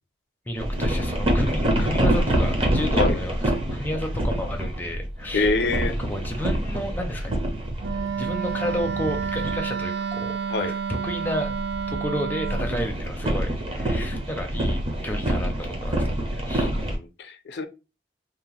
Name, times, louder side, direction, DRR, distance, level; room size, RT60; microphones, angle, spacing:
voice 1, 0.5-5.5 6.0-7.3 8.1-10.3 10.6-11.6 11.9-16.7, equal, 10° left, 0.4 m, -32 dB
sound 1, 0.6-9.6 11.1-17.0, right 1 dB, 30° right, 0.6 m, -26 dB
voice 2, 5.3-6.0 10.5-10.7 16.9-17.7, left 3 dB, 70° left, 0.4 m, -25 dB
Wind instrument woodwind instrument, 7.8-12.7, right 6 dB, 65° right, 0.3 m, -29 dB
2.8 x 2.0 x 2.9 m
head